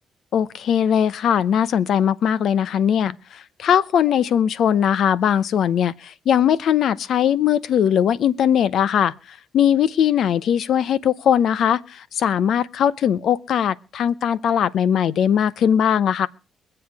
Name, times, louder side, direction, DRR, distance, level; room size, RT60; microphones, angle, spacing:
voice 1, 0.3-16.3, left 9 dB, 70° left, 0.7 m, -20 dB
23.5 x 7.8 x 4.7 m
cardioid pair, 90°, 0 cm